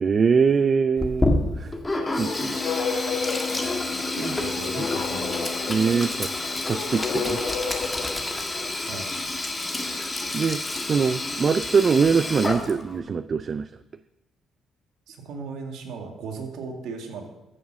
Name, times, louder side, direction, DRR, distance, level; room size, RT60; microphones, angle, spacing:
voice 1, 0.0-1.7 2.2-2.6 3.6-4.4 4.8-4.9 5.7-6.3 6.7-7.4 9.8-10.6 10.9-13.7, right 5 dB, 45° right, 13 dB, 0.4 m, -23 dB
Sink (filling or washing), 1.0-13.0, left 2 dB, 20° left, 1.8 m, -29 dB
sound 1, 1.9-8.8, left 5 dB, 65° left, 1.7 m, -32 dB
Wind instrument woodwind instrument, 2.4-8.0, left 6 dB, 35° left, 0.7 m, -37 dB
voice 2, 4.1-5.5 8.9-9.1 15.1-17.3, right 4 dB, 85° right, 3 dB, 2.2 m, -36 dB
14.5 x 7.3 x 6.1 m, 0.95 s
cardioid pair, 90°, 0 cm